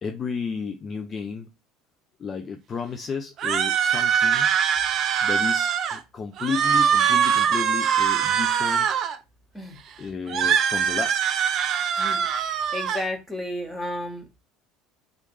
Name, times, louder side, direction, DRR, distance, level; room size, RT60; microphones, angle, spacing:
voice 1, 0.0-1.5 2.2-4.5 5.2-8.9 10.0-11.3, left 5 dB, 30° left, 0.5 m, -32 dB
sound 1, 3.4-6.0 6.4-9.2 10.3-13.0, right 8 dB, 45° right, 0.5 m, -22 dB
voice 2, 12.0-14.4, left 1 dB, 10° left, 1.5 m, -33 dB
3.9 x 3.2 x 3.2 m
figure-of-eight pair, 65°, 0 cm